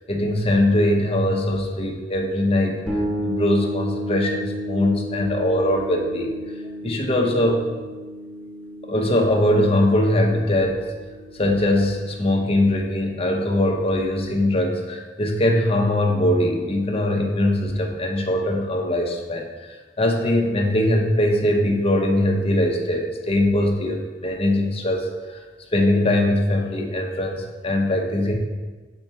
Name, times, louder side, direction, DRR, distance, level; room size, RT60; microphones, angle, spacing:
voice 1, 0.1-2.8 3.2-6.3 6.8-7.7 8.8-10.8 11.4-19.5 20.0-25.4 25.7-28.3, left 1 dB, 35° left, 1 dB, 0.8 m, -21 dB
sound 1, 2.9-12.5, equal, 5° left, 1.4 m, -32 dB
4.6 x 4.3 x 5.6 m, 1.3 s
head